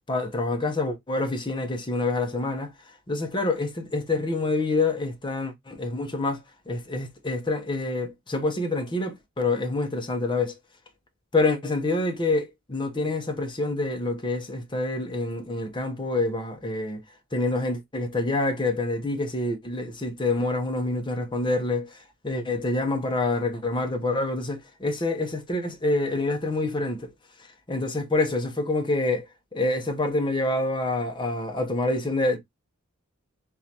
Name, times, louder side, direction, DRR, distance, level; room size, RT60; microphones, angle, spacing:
voice 1, 0.1-2.7 3.1-6.4 6.7-10.5 11.3-17.0 17.3-27.1 27.7-29.2 29.5-32.4, left 2 dB, 25° left, 0.8 m, -27 dB
3.8 x 3.0 x 2.8 m
head